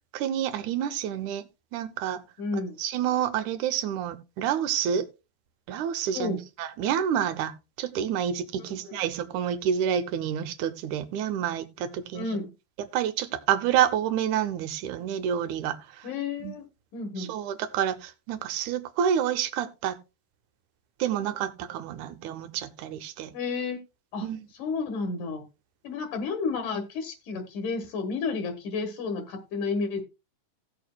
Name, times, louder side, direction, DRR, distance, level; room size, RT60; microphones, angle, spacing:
voice 1, 0.1-2.2 2.8-5.1 5.7-7.5 7.8-12.4 12.8-16.1 16.4-16.6 17.2-20.0 21.0-23.3 24.2-24.5, right 9 dB, 75° right, 2.1 m, -28 dB
voice 2, 2.4-2.8 6.1-6.4 12.2-12.5 16.0-16.7 16.9-17.3 23.3-23.8 24.1-24.3 24.6-25.4 25.8-30.0, left 4 dB, 75° left, 2.7 m, -31 dB
17.5 x 6.7 x 2.2 m
omnidirectional pair, 3.6 m